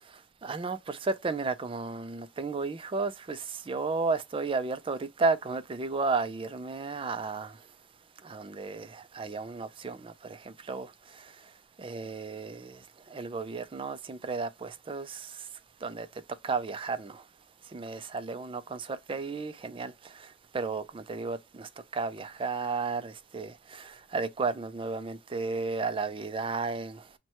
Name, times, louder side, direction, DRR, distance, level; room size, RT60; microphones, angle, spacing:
voice 1, 0.4-7.6 8.2-11.3 11.8-12.8 13.1-15.5 15.8-16.1 16.4-17.2 17.7-27.0, right 4 dB, 30° right, 0.4 m, -33 dB
4.5 x 2.2 x 4.2 m
head